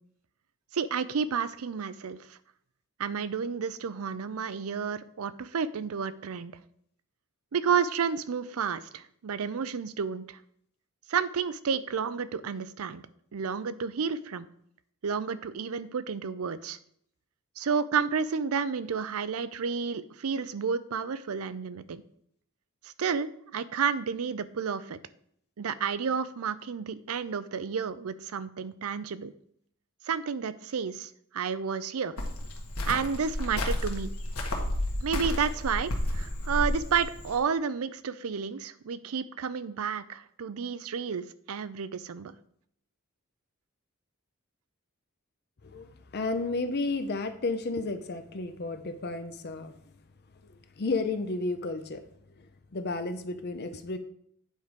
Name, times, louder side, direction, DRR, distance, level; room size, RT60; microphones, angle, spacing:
voice 1, 0.7-2.4 3.0-6.6 7.5-10.4 11.1-13.0 13.3-14.5 15.0-16.8 17.6-22.0 22.8-23.3 23.5-25.0 25.6-29.3 30.1-32.2 32.9-34.1 35.0-42.3, right 6 dB, 80° right, 15 dB, 0.5 m, -31 dB
Cricket, 32.2-37.3, left 1 dB, 85° left, 1.6 m, -31 dB
voice 2, 45.6-49.8 50.4-52.0 52.4-52.5 52.7-54.0, left 3 dB, 50° left, 8 dB, 0.6 m, -32 dB
9.2 x 4.6 x 5.1 m, 0.67 s
head